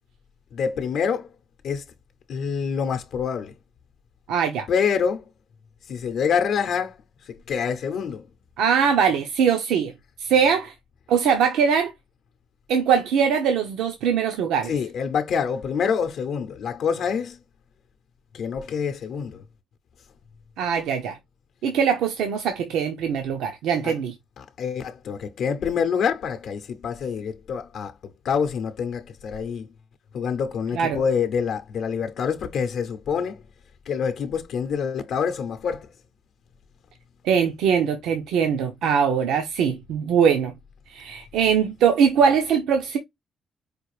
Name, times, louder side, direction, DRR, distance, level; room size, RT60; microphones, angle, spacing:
voice 1, 0.5-1.3 1.6-1.8 2.3-3.5 4.7-5.3 5.9-7.0 7.2-8.3 14.6-17.4 18.3-19.4 23.8-24.0 24.4-29.7 30.1-33.4 33.9-35.9, left 6 dB, 70° left, 0.6 m, -26 dB
voice 2, 4.3-4.7 8.6-9.9 10.2-10.7 11.1-11.9 12.7-14.7 20.6-21.2 21.6-24.1 30.7-31.0 37.2-40.5 40.9-43.0, right 7 dB, 85° right, 0.7 m, -21 dB
4.9 x 2.4 x 3.2 m
cardioid pair, 90°, 0 cm